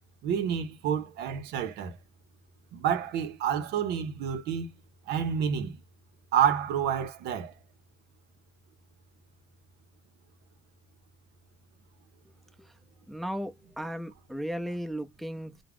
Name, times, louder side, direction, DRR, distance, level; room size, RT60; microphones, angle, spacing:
voice 1, 0.2-2.0 2.7-4.7 5.1-5.8 6.3-7.5, right 8 dB, 75° right, 0.6 m, -29 dB
voice 2, 13.1-15.6, equal, ahead, 0.5 m, -36 dB
2.3 x 2.0 x 3.3 m
cardioid pair, 110°, 17 cm